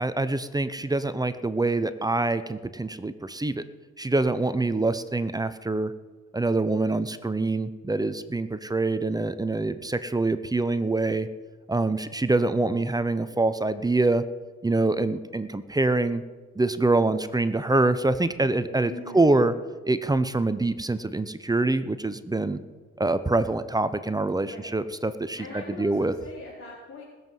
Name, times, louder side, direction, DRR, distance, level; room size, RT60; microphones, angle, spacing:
voice 1, 0.0-3.6 4.0-5.9 6.3-11.3 11.7-14.2 14.6-16.2 16.6-19.5 19.9-22.6 23.0-26.1, right 2 dB, 15° right, 13 dB, 0.7 m, -25 dB
voice 2, 18.8-19.6 24.4-24.7 25.3-27.0, left 3 dB, 45° left, -6 dB, 4.2 m, -42 dB
20.0 x 7.6 x 5.5 m, 1.3 s
cardioid pair, 90°, 30 cm